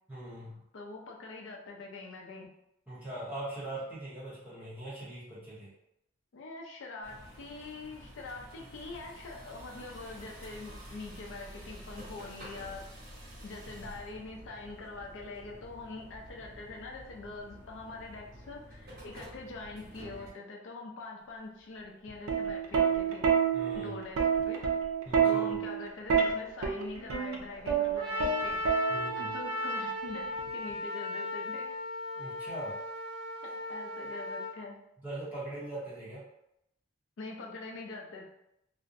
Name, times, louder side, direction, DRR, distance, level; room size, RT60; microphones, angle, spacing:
voice 1, 0.1-0.6 2.9-5.7 23.5-24.0 25.0-25.6 28.9-29.3 32.2-32.8 35.0-36.2, right 1 dB, 10° right, -10 dB, 0.7 m, -41 dB
voice 2, 0.7-2.5 6.3-12.8 13.4-23.3 23.7-24.2 24.5-24.6 25.2-28.6 29.2-31.7 33.4-34.8 37.2-38.3, left 3 dB, 65° left, 0 dB, 0.4 m, -44 dB
sound 1, 7.0-20.3, equal, 45° right, 0.9 m, -49 dB
Plucked string instrument, 22.1-29.3 30.4-30.7, right 6 dB, 90° right, 0.4 m, -28 dB
Trumpet, 28.0-34.5, left 1 dB, 25° right, 0.3 m, -36 dB
2.5 x 2.0 x 2.5 m, 0.81 s
head